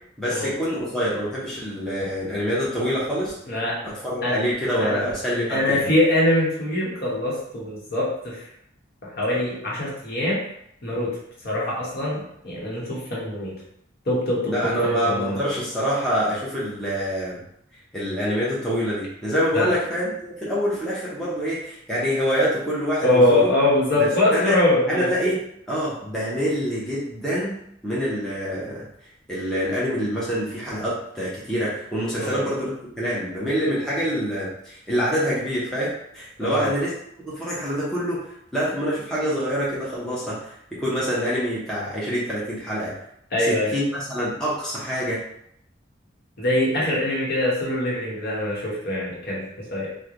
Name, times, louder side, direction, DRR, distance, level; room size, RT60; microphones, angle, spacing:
voice 1, 0.2-3.4 3.8-5.9 14.4-17.4 17.9-23.5 24.0-24.5 24.9-25.4 25.7-27.6 27.8-28.9 29.3-36.9 37.3-42.9 43.5-45.2, equal, 5° left, -8 dB, 0.7 m, -26 dB
voice 2, 3.5-3.8 4.2-4.4 4.8-5.0 5.5-8.4 9.2-10.4 10.8-11.1 11.4-13.5 14.1-15.4 19.5-19.7 23.0-25.1 32.2-32.4 36.4-36.7 43.3-43.7 46.4-49.4 49.7-49.9, left 1 dB, 50° left, -5 dB, 1.1 m, -23 dB
3.1 x 2.2 x 3.7 m, 0.74 s
head